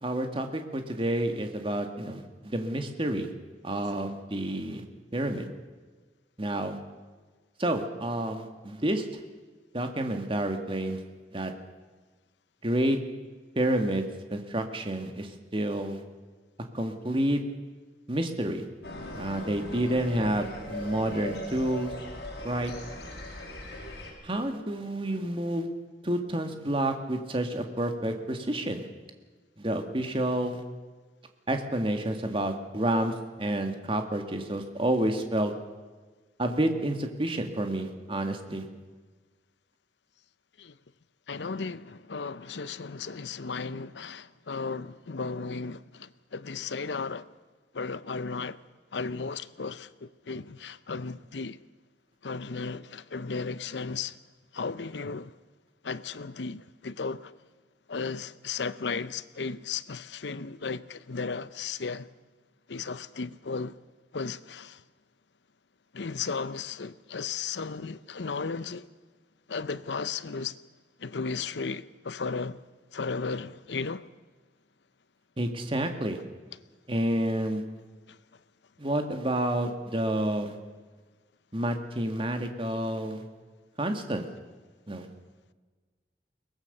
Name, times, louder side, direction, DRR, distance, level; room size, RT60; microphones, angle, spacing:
voice 1, 0.0-3.3 3.6-4.8 5.1-5.5 6.4-6.8 7.6-9.0 9.7-11.0 11.3-11.5 12.6-13.0 13.6-16.0 16.7-17.4 18.1-18.6 19.1-21.9 22.4-22.7 24.2-25.7 26.0-28.9 29.6-30.6 31.5-33.1 33.4-35.5 36.4-38.7 75.4-76.2 76.9-77.6 78.8-80.6 81.5-83.2 83.8-84.3 84.9-85.1, right 1 dB, 30° right, 1.9 m, -29 dB
sound 1, 18.8-24.1, left 1 dB, 70° left, 5.4 m, -39 dB
voice 2, 41.3-47.3 47.7-48.6 48.9-51.6 52.2-54.2 54.5-55.3 55.8-57.3 57.9-62.1 62.7-63.8 64.1-64.8 65.9-68.9 69.5-70.5 71.0-72.6 72.9-74.1, left 4 dB, 85° left, 0.7 m, -35 dB
22.5 x 19.5 x 6.7 m
head